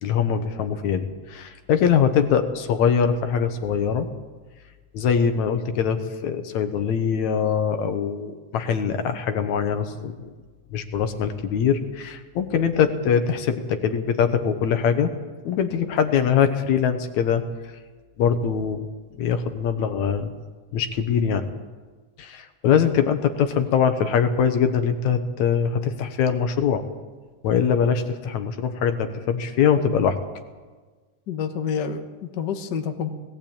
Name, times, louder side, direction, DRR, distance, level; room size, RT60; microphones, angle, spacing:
voice 1, 0.0-4.1 4.9-10.3 10.7-15.1 15.5-17.4 18.2-18.8 19.2-20.3 20.7-21.4 22.2-26.8 27.4-30.2, left 7 dB, 70° left, 8 dB, 2.4 m, -22 dB
voice 2, 31.3-33.1, left 7 dB, 55° left, 6 dB, 1.2 m, -28 dB
19.5 x 15.5 x 8.8 m, 1.4 s
omnidirectional pair, 3.6 m